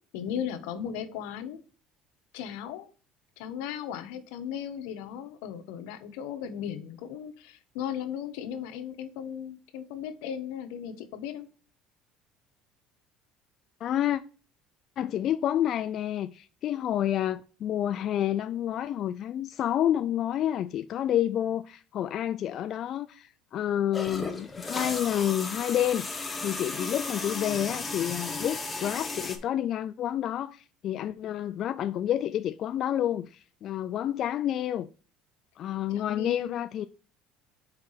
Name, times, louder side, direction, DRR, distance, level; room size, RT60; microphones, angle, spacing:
voice 1, 0.1-1.6 2.3-2.9 3.4-11.5 35.9-36.5, left 9 dB, 85° left, 1.2 m, -36 dB
voice 2, 13.8-14.2 15.0-26.1 26.4-34.9 35.6-36.8, left 11 dB, 45° left, 0.3 m, -29 dB
sound 1, 23.9-29.4, left 3 dB, 15° left, 1.2 m, -35 dB
4.8 x 4.7 x 5.7 m
cardioid pair, 140°, 0 cm